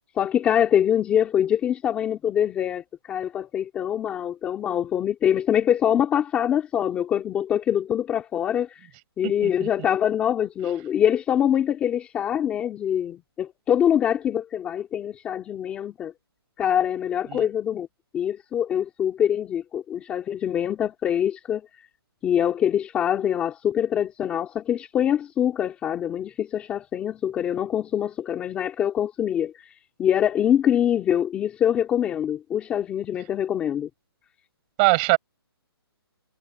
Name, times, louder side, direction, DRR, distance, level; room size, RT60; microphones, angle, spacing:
voice 1, 0.2-8.9 9.2-16.1 16.6-17.9 18.1-21.6 22.2-29.7 30.0-33.9, left 9 dB, 10° left, 2.4 m, -24 dB
voice 2, 9.2-9.7 17.3-17.5 34.8-35.2, right 34 dB, 20° right, 6.2 m, -22 dB
hypercardioid pair, 175°, 14 cm